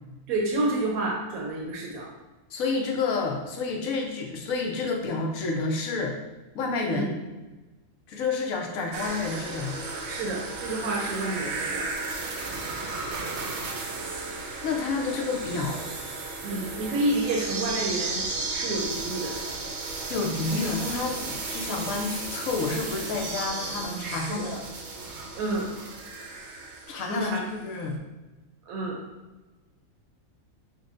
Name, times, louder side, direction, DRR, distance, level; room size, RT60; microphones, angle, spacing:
voice 1, 0.3-2.1 6.9-7.1 10.0-11.9 16.4-18.3 18.5-19.4 24.0-24.5 25.4-25.7 27.1-27.5 28.7-29.0, right 2 dB, 80° right, -2 dB, 1.1 m, -29 dB
voice 2, 2.5-6.1 6.5-7.1 8.1-9.8 14.0-14.3 14.6-15.9 20.1-24.6 26.9-28.0, left 4 dB, 75° left, 1 dB, 1.1 m, -29 dB
sound 1, 8.9-27.4 27.7-27.8, right 3 dB, 65° right, 0.8 m, -34 dB
6.1 x 2.2 x 2.5 m, 1.2 s
omnidirectional pair, 1.5 m